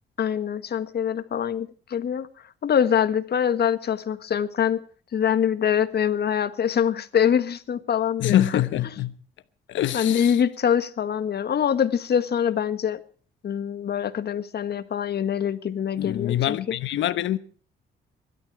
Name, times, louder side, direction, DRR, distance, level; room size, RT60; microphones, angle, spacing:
voice 1, 0.2-2.3 2.6-4.8 5.1-8.6 9.9-13.0 13.4-16.8, left 8 dB, 55° left, 1.5 m, -24 dB
voice 2, 8.2-9.1 9.7-10.4 16.0-17.4, left 12 dB, 75° left, 1.0 m, -24 dB
23.5 x 12.5 x 4.8 m
cardioid pair, 90°, 20 cm